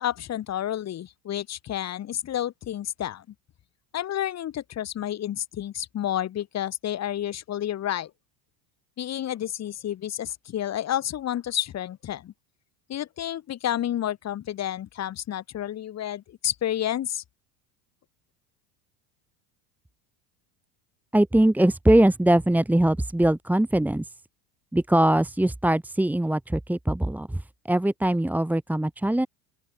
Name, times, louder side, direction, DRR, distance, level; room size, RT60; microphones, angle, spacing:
voice 1, 0.0-3.2 3.9-8.1 9.0-12.3 12.9-17.2, left 11 dB, 35° left, 5.5 m, -30 dB
voice 2, 21.1-24.1 24.7-29.3, right 1 dB, 5° right, 2.9 m, -22 dB
open air
supercardioid pair, 135°, 44 cm